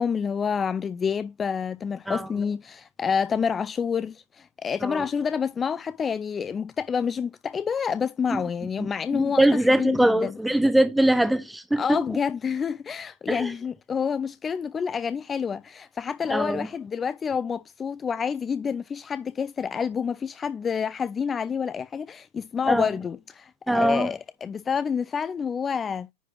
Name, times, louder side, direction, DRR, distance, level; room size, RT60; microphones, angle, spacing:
voice 1, 0.0-10.4 11.8-26.1, left 6 dB, 20° left, 0.3 m, -28 dB
voice 2, 8.8-12.0 13.3-13.5 16.3-16.7 22.7-22.9 23.7-24.1, right 1 dB, 5° right, 0.9 m, -22 dB
9.8 x 4.7 x 3.2 m
figure-of-eight pair, 90°, 0 cm